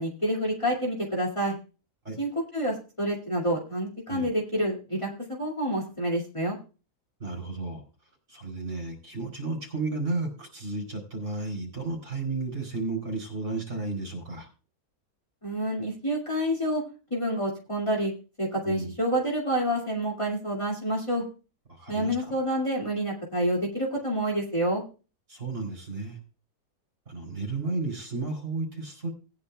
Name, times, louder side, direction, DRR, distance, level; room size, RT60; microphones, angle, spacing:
voice 1, 0.0-1.5 2.2-6.6 15.4-16.8 17.1-18.1 18.4-21.2 21.9-24.8, equal, 20° left, -3 dB, 2.2 m, -28 dB
voice 2, 7.2-7.8 8.3-14.5 18.6-18.9 21.7-22.3 25.3-26.2 27.1-29.1, right 3 dB, 50° right, 1 dB, 4.0 m, -33 dB
18.0 x 9.9 x 2.3 m, 0.33 s
omnidirectional pair, 1.7 m